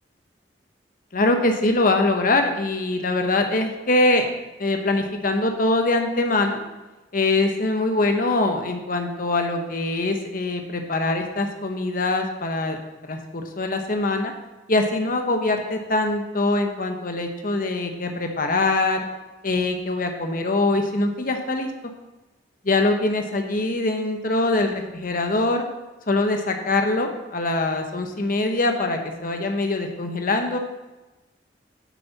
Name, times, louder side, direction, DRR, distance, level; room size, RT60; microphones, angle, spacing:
voice 1, 1.1-4.3 4.6-6.6 7.1-12.8 13.1-14.3 14.7-19.1 19.4-21.7 22.6-25.6 26.1-30.6, left 2 dB, 50° left, 5 dB, 1.1 m, -23 dB
9.3 x 7.8 x 4.2 m, 1.1 s
head